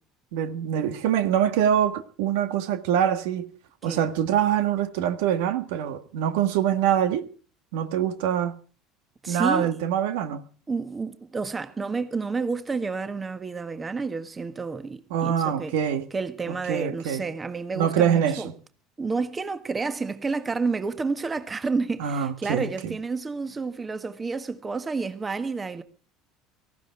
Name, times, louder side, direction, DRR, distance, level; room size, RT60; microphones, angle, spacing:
voice 1, 0.3-3.5 3.8-7.2 7.7-8.5 9.3-10.4 15.1-16.1 16.5-17.2 17.8-18.5 22.0-22.9, right 9 dB, 75° right, 1.8 m, -24 dB
voice 2, 9.2-9.8 10.7-15.7 16.1-18.5 19.0-25.8, right 4 dB, 25° right, 1.6 m, -30 dB
18.5 x 15.5 x 4.8 m
hypercardioid pair, 85°, 0 cm